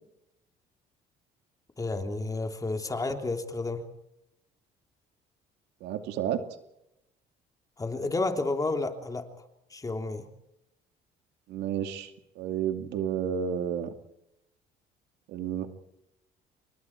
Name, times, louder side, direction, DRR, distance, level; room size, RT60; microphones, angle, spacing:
voice 1, 1.8-3.8 7.8-9.2 9.7-10.3, left 3 dB, 20° left, 5 dB, 3.3 m, -31 dB
voice 2, 5.8-6.4 11.5-12.1 12.4-13.9 15.3-15.7, right 9 dB, 85° right, 6 dB, 2.6 m, -31 dB
29.5 x 25.5 x 4.7 m, 0.82 s
cardioid pair, 110°, 17 cm